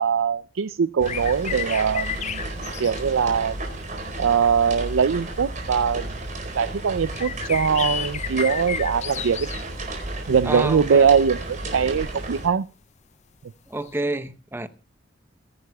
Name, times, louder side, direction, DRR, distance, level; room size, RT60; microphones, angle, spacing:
voice 1, 0.0-2.4 2.8-3.6 4.2-6.1 6.6-9.5 10.3-12.6, right 6 dB, 80° right, 0.5 m, -21 dB
sound 1, 1.0-3.3 4.2-4.3 5.2-5.3 7.1-9.6 11.1-11.3 13.9-14.0, left 8 dB, 35° left, 0.5 m, -32 dB
sound 2, 1.0-12.5, right 2 dB, 40° right, 4.4 m, -33 dB
voice 2, 10.4-11.3 13.7-14.7, right 2 dB, 10° right, 0.8 m, -29 dB
22.5 x 11.0 x 2.3 m
head